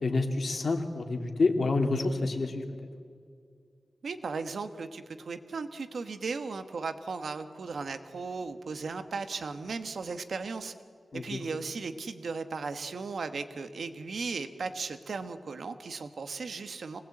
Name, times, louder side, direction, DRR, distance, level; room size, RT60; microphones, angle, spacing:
voice 1, 0.0-2.6 11.1-11.4, left 3 dB, 60° left, 4 dB, 2.6 m, -28 dB
voice 2, 4.0-10.7 11.1-17.0, right 4 dB, 75° right, 10 dB, 1.4 m, -36 dB
25.5 x 19.0 x 8.6 m, 2.2 s
wide cardioid pair, 140°, 0 cm